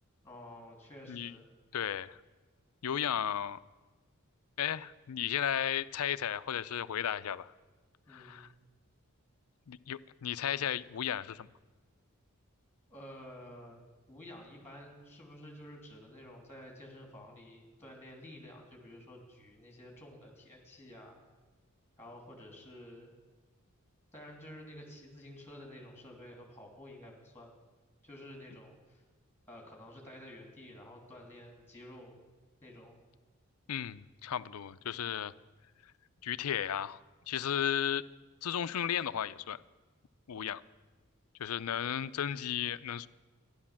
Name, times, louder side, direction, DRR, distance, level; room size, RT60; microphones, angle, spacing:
voice 1, 0.2-1.5 8.1-8.5 12.9-21.2 22.0-23.1 24.1-27.6 28.0-29.0 29.5-32.1 32.6-33.0, left 1 dB, 10° left, 2 dB, 2.8 m, -51 dB
voice 2, 1.7-2.2 2.8-3.6 4.6-7.5 8.1-8.5 9.7-11.5 33.7-35.3 35.8-35.9 36.2-37.0 37.3-38.0 38.4-39.6 40.3-40.6 41.4-43.1, left 9 dB, 80° left, 16 dB, 0.5 m, -34 dB
13.5 x 11.0 x 7.3 m, 1.3 s
head